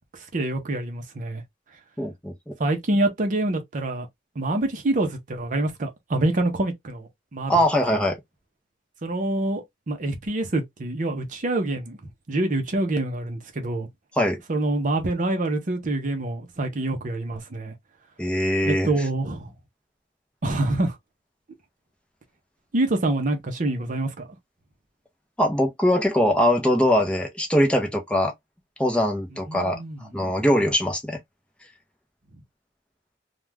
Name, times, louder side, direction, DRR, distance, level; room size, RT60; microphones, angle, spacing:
voice 1, 0.1-1.4 2.6-4.1 4.4-7.5 9.0-12.0 12.3-13.9 14.5-17.7 18.6-19.5 20.4-21.0 22.7-24.3 29.5-30.0, right 2 dB, 45° right, 0.6 m, -26 dB
voice 2, 2.0-2.5 7.5-8.2 14.2-14.4 18.2-18.9 25.4-28.3 28.8-29.8 30.1-31.2, equal, 5° left, 0.6 m, -22 dB
2.4 x 2.2 x 3.1 m
head